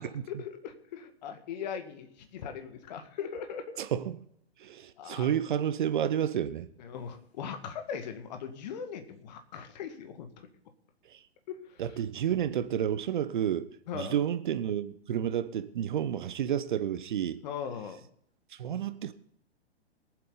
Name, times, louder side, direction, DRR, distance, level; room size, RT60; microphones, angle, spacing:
voice 1, 0.3-3.8 5.0-5.3 6.8-10.5 11.5-11.8 13.9-14.2 17.4-18.0, left 7 dB, 45° left, 1.9 m, -39 dB
voice 2, 3.8-4.2 4.6-6.7 11.1-11.2 11.8-13.7 13.9-17.4 18.6-19.1, right 9 dB, 50° right, 0.9 m, -30 dB
22.5 x 7.8 x 3.9 m
figure-of-eight pair, 115°, 31 cm